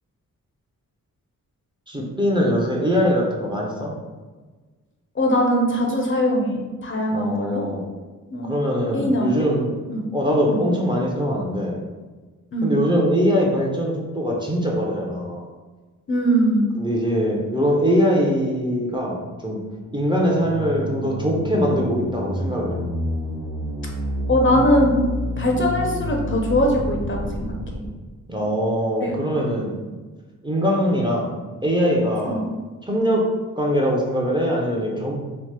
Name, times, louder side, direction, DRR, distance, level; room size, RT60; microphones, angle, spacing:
voice 1, 1.9-3.9 7.1-7.9 8.4-9.7 10.1-11.8 12.6-15.5 16.8-19.6 19.9-22.8 28.3-29.7 30.4-31.4 31.6-32.5 32.8-35.1, equal, 15° right, -3 dB, 0.5 m, -22 dB
voice 2, 5.2-7.6 8.3-8.5 8.9-9.3 9.9-10.1 10.5-10.6 12.5-12.8 16.1-16.7 24.3-25.0 25.4-27.6 29.0-29.1 29.5-29.7 32.3-32.4, equal, 40° left, 0 dB, 0.6 m, -21 dB
sound 1, 19.1-27.9, equal, 85° right, 0.8 m, -29 dB
2.9 x 2.0 x 3.3 m, 1.3 s
cardioid pair, 75°, 33 cm